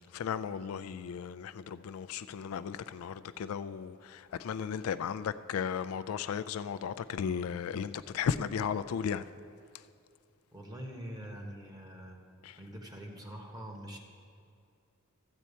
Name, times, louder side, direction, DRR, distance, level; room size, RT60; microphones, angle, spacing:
voice 1, 0.1-9.2 12.4-12.5, left 7 dB, 80° left, 0.3 m, -35 dB
voice 2, 10.5-12.2 12.6-14.0, equal, 20° right, 1.0 m, -44 dB
13.0 x 4.4 x 8.3 m
head